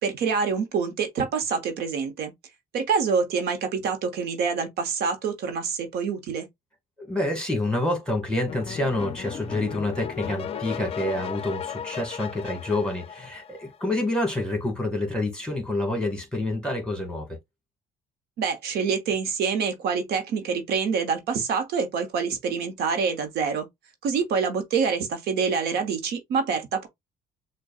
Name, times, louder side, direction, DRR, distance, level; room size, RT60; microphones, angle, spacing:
voice 1, 0.0-2.3 2.7-6.5 18.4-23.7 24.0-26.9, right 5 dB, 75° right, 1.0 m, -26 dB
voice 2, 7.0-17.4, left 2 dB, 5° left, 1.7 m, -28 dB
sound 1, 8.5-13.9, left 8 dB, 35° left, 0.4 m, -35 dB
6.2 x 2.3 x 2.3 m
cardioid pair, 110°, 17 cm